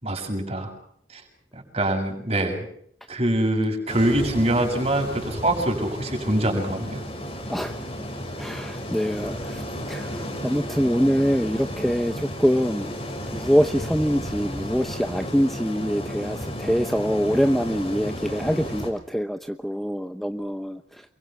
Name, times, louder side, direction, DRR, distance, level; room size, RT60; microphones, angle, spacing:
voice 1, 0.0-0.7 1.1-1.2 1.6-2.7 3.1-7.0, right 1 dB, 35° right, 3 dB, 7.0 m, -24 dB
sound 1, 3.9-18.9, equal, 30° left, 6.1 m, -33 dB
voice 2, 8.4-13.0 13.3-21.0, equal, ahead, 8 dB, 0.9 m, -24 dB
28.5 x 24.0 x 6.0 m, 0.65 s
head